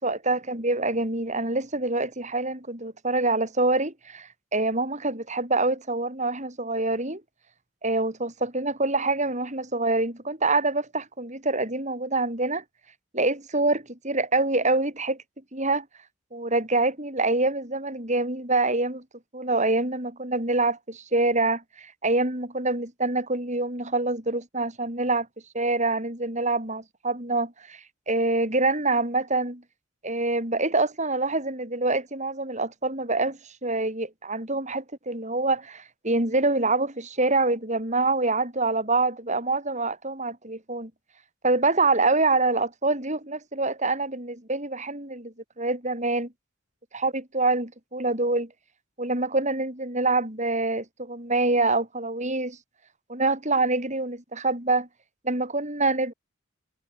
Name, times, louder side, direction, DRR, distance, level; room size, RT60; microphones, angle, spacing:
voice 1, 0.0-7.2 7.8-12.6 13.1-15.2 15.5-15.9 16.3-19.0 19.3-25.3 25.5-29.6 30.0-40.9 41.4-46.3 46.9-48.5 49.0-52.6 53.1-54.9 55.2-56.1, right 2 dB, 35° right, 7.4 m, -26 dB
head